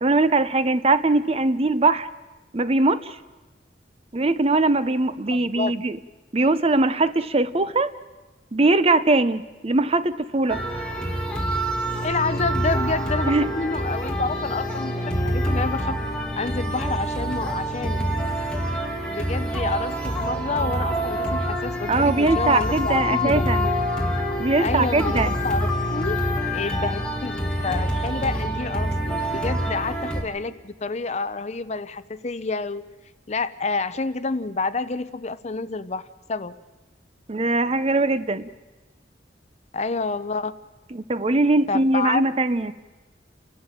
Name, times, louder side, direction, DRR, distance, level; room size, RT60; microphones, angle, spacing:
voice 1, 0.0-2.1 2.5-3.2 4.1-6.0 6.3-7.9 8.5-10.6 13.3-13.5 21.9-23.7 24.4-25.4 29.3-29.4 37.3-38.5 40.9-42.7, right 2 dB, 35° right, 14 dB, 0.7 m, -21 dB
voice 2, 5.3-5.8 12.0-16.0 16.4-18.1 19.1-23.5 24.6-26.2 26.5-27.4 27.6-32.8 33.3-36.0 36.3-36.6 39.7-40.5 41.7-42.2, left 3 dB, 40° left, 13 dB, 0.7 m, -28 dB
sound 1, 10.5-30.2, equal, 5° left, 2.7 m, -26 dB
30.0 x 12.0 x 9.0 m, 1.2 s
head